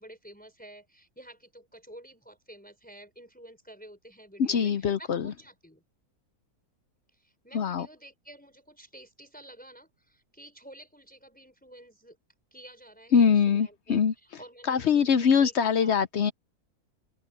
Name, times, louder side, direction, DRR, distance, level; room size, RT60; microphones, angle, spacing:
voice 1, 0.0-5.8 7.1-12.2 12.5-16.0, right 1 dB, 5° left, 4.7 m, -50 dB
voice 2, 4.4-5.3 7.5-7.9 13.1-14.1 14.7-16.3, left 6 dB, 60° left, 0.8 m, -23 dB
open air
omnidirectional pair, 1.6 m